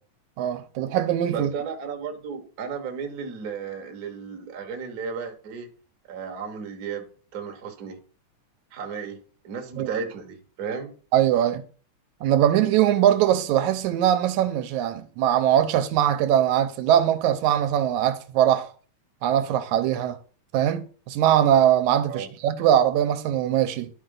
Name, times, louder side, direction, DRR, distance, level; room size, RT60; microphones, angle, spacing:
voice 1, 0.4-1.5 9.8-9.9 11.1-11.6 12.2-18.7 19.2-20.2 20.5-23.9, right 11 dB, 80° right, 2.1 m, -21 dB
voice 2, 1.3-5.7 6.1-8.0 8.7-10.9 22.1-22.3, right 6 dB, 55° right, 1.1 m, -34 dB
11.5 x 4.4 x 3.8 m
omnidirectional pair, 3.4 m